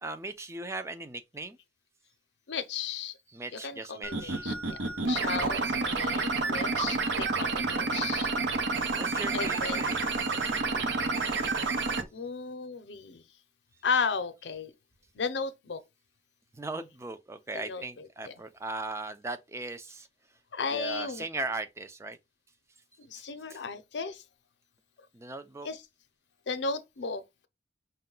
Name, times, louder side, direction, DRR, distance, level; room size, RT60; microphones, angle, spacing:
voice 1, 0.0-1.6 3.3-4.5 5.1-5.3 8.8-10.0 10.4-11.0 16.5-20.1 20.6-22.2 23.5-23.6 25.1-25.7, right 2 dB, 15° right, 0.4 m, -39 dB
voice 2, 2.5-3.2 3.5-8.3 9.3-9.9 12.1-13.2 13.8-14.7 15.1-15.8 17.5-18.3 20.5-21.2 23.0-24.2 25.6-25.8 26.5-27.5, left 5 dB, 70° left, 0.6 m, -35 dB
sound 1, 4.0-12.0, right 3 dB, 75° right, 0.8 m, -29 dB
5.4 x 2.2 x 3.8 m
head